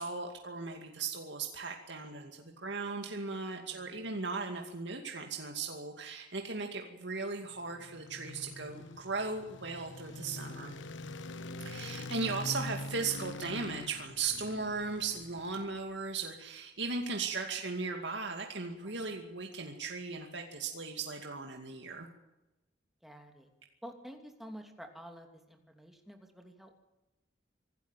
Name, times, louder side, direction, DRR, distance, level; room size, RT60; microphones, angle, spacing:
voice 1, 0.0-10.8 11.7-22.1, right 4 dB, 65° right, 3 dB, 2.4 m, -37 dB
voice 2, 3.5-4.0 18.8-19.2 23.0-23.5 23.8-26.7, equal, ahead, 4 dB, 2.8 m, -50 dB
sound 1, 7.5-15.9, left 2 dB, 75° left, 1.1 m, -44 dB
25.5 x 13.0 x 9.2 m, 0.99 s
head